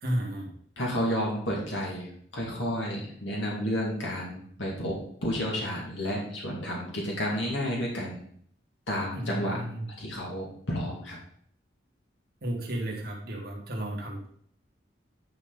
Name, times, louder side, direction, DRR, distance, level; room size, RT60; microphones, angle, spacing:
voice 1, 0.0-0.5 9.1-9.9 12.4-14.3, right 1 dB, 55° right, -1 dB, 2.1 m, -33 dB
voice 2, 0.8-2.1 2.3-8.2 8.9-9.6 10.0-11.2, equal, 90° left, -3 dB, 2.5 m, -31 dB
10.5 x 5.3 x 4.0 m, 0.62 s
head